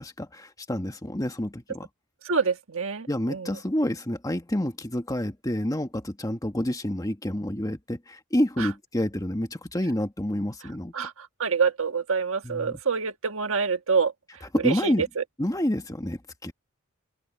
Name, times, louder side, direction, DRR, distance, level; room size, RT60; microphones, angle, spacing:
voice 1, 0.0-1.9 3.1-10.9 12.4-12.7 14.5-15.0 15.4-16.5, left 1 dB, 15° left, 1.5 m, -28 dB
voice 2, 2.2-3.6 8.6-8.7 10.9-14.1 14.6-15.2, right 5 dB, 60° right, 1.5 m, -26 dB
open air
head